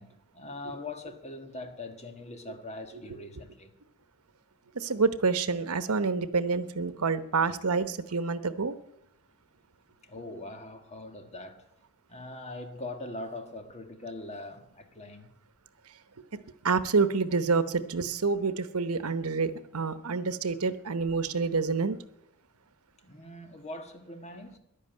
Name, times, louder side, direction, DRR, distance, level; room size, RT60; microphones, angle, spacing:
voice 1, 0.0-3.7 10.0-11.7 12.1-15.3 23.0-24.6, left 2 dB, 30° left, 1.7 m, -42 dB
voice 2, 4.7-8.7 16.3-16.4 16.6-22.0, right 4 dB, 85° right, 1.0 m, -28 dB
13.0 x 11.0 x 9.3 m
head